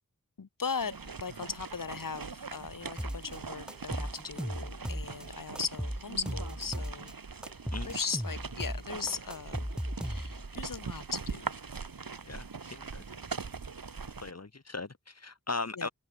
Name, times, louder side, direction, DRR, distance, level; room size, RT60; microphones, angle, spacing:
voice 1, 0.4-7.1 7.8-9.7 10.0-11.6 15.8-15.9, left 5 dB, 70° left, 1.5 m, -38 dB
sound 1, 0.8-14.3, right 5 dB, 80° right, 2.7 m, -42 dB
sound 2, 3.0-3.4 3.7-5.2 5.5-7.1 7.4-10.5, equal, ahead, 1.8 m, -36 dB
voice 2, 12.2-13.5 13.8-15.9, left 3 dB, 45° left, 2.6 m, -39 dB
wide cardioid pair, 75°, 34 cm